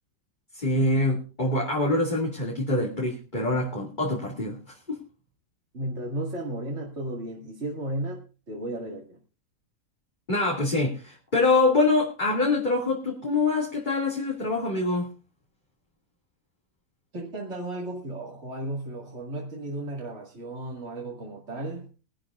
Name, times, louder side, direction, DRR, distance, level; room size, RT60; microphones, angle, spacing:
voice 1, 0.5-5.0 10.3-15.1, left 2 dB, 35° left, -2 dB, 2.5 m, -25 dB
voice 2, 5.7-9.2 17.1-22.0, right 1 dB, 55° right, -2 dB, 2.5 m, -34 dB
22.0 x 11.5 x 2.5 m, 0.33 s
omnidirectional pair, 1.4 m